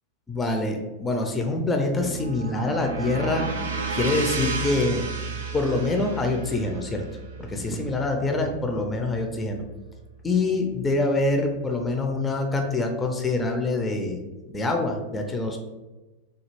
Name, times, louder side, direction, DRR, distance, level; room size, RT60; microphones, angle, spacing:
voice 1, 0.3-3.5 3.9-5.0 5.5-7.0 7.4-9.6 10.2-14.2 14.5-15.6, left 2 dB, 15° left, 3 dB, 0.4 m, -25 dB
sound 1, 1.6-9.6, right 4 dB, 65° right, 0.4 m, -33 dB
3.2 x 2.3 x 3.1 m, 1.1 s
figure-of-eight pair, 90°, 0 cm